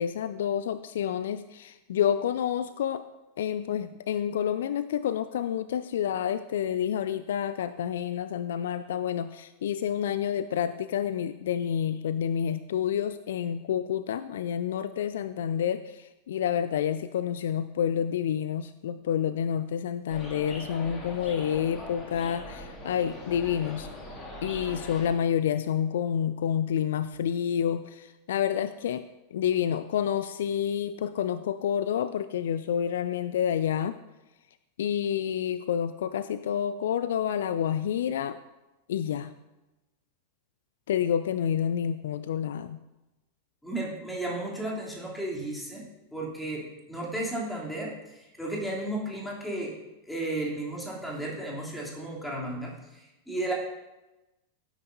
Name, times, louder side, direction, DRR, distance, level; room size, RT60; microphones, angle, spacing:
voice 1, 0.0-3.1 3.4-23.9 24.4-29.0 29.3-34.0 34.8-38.4 38.9-39.3 40.9-42.8, left 9 dB, 60° left, 14 dB, 0.3 m, -29 dB
sound 1, 20.1-25.1, left 1 dB, 25° left, 2.5 m, -41 dB
voice 2, 43.6-45.8 46.1-49.7 50.0-53.5, right 1 dB, 5° left, -4 dB, 3.1 m, -34 dB
17.0 x 9.1 x 2.7 m, 1.0 s
figure-of-eight pair, 90°, 0 cm